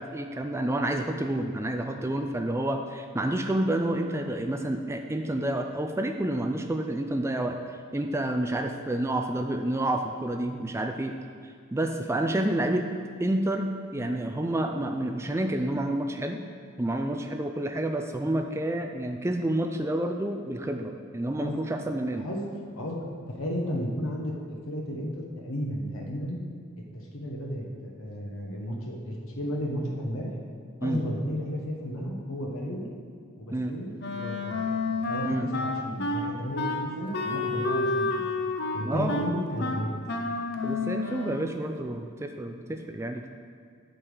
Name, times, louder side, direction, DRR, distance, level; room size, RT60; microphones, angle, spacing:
voice 1, 0.0-7.6 7.9-11.2 11.7-12.9 13.2-16.4 16.8-22.3 30.8-31.0 33.5-33.7 35.2-35.5 38.9-39.2 40.6-43.3, right 1 dB, 10° right, 4 dB, 0.4 m, -29 dB
voice 2, 22.7-26.4 26.9-30.3 30.8-32.9 33.4-34.6 35.0-38.2 38.7-39.9, equal, 70° left, -1 dB, 1.3 m, -33 dB
Wind instrument woodwind instrument, 34.0-41.6, left 3 dB, 50° left, 0.7 m, -30 dB
8.8 x 5.2 x 6.3 m, 2.3 s
head